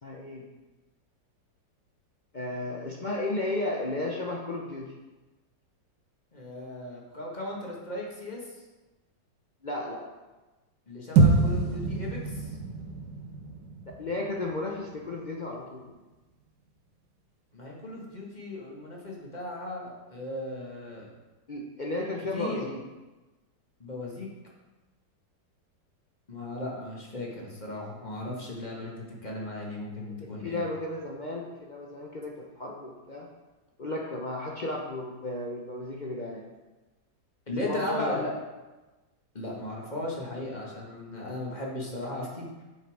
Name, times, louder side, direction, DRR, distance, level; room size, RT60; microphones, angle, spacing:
voice 1, 0.0-0.5 2.3-4.9 9.6-10.2 14.0-16.0 21.5-22.8 30.4-33.3 33.8-36.5 37.6-38.2, left 2 dB, 60° left, -1 dB, 0.4 m, -34 dB
voice 2, 6.3-8.6 10.9-12.6 17.5-21.1 22.3-22.7 23.8-24.3 26.3-30.6 37.5-38.4 39.3-42.6, left 1 dB, 25° left, -2 dB, 1.5 m, -36 dB
sound 1, 11.2-15.5, right 3 dB, 65° right, 1.4 m, -26 dB
7.5 x 5.7 x 4.7 m, 1.2 s
omnidirectional pair, 2.0 m